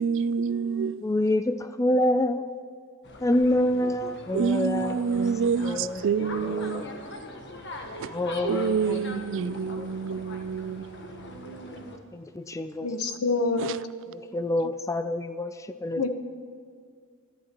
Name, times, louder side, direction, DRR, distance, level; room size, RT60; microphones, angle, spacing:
voice 1, 0.0-1.0 4.3-6.8 8.4-11.5, right 6 dB, 60° right, 0.3 m, -27 dB
voice 2, 1.0-2.5 3.2-5.2 5.6-6.9 8.1-9.9 12.1-12.9 14.1-16.1, left 1 dB, 15° left, 0.3 m, -27 dB
sound 1, 3.0-12.0, left 1 dB, 50° left, 1.3 m, -41 dB
voice 3, 12.8-13.8 16.0-16.1, left 3 dB, 80° left, 1.1 m, -26 dB
26.0 x 11.0 x 3.0 m
head